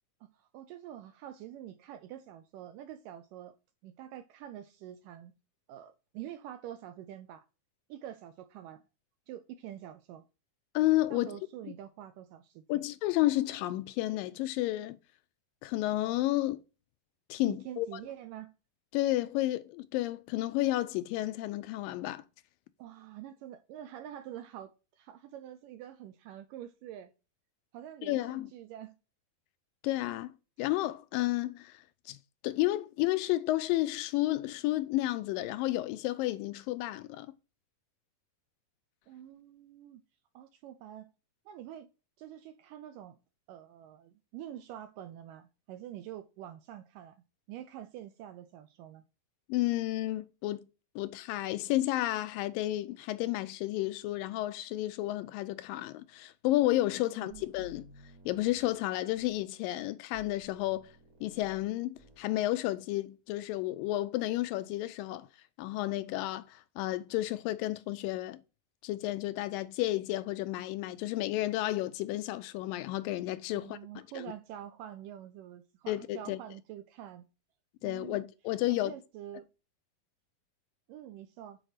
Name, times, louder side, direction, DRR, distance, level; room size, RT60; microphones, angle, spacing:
voice 1, 0.2-3.6 3.8-5.3 5.7-7.4 7.9-8.8 9.3-10.2 11.1-12.8 17.5-18.5 22.8-27.1 27.7-28.9 39.1-40.0 40.3-41.1 41.5-41.9 42.2-43.2 43.5-47.2 47.5-49.0 57.1-57.5 73.5-77.3 77.8-78.3 78.7-79.5 80.9-81.6, right 11 dB, 80° right, 2.0 m, -46 dB
voice 2, 10.8-11.4 12.7-15.0 15.6-16.6 17.3-18.0 18.9-22.2 28.0-28.5 29.8-30.3 30.6-32.2 32.4-37.3 49.5-50.6 51.0-57.8 58.3-60.9 61.2-65.3 65.6-68.4 68.8-73.8 75.9-76.4 77.8-78.9, left 16 dB, 80° left, 2.1 m, -31 dB
sound 1, 57.3-59.4 60.1-61.7 61.9-62.3, right 1 dB, 60° right, 3.6 m, -57 dB
7.7 x 4.5 x 4.9 m
omnidirectional pair, 4.2 m